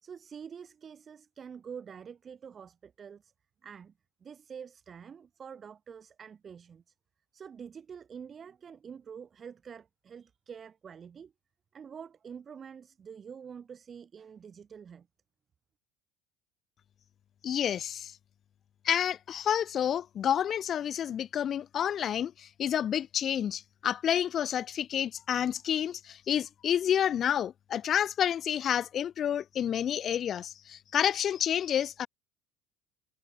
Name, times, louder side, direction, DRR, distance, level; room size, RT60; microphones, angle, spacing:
voice 1, 0.0-3.3 3.6-3.9 4.2-6.9 7.3-11.3 11.7-15.1, right 7 dB, 30° right, 1.1 m, -46 dB
voice 2, 17.4-18.2 18.8-32.1, left 9 dB, 40° left, 0.9 m, -29 dB
supercardioid pair, 110°, 0 cm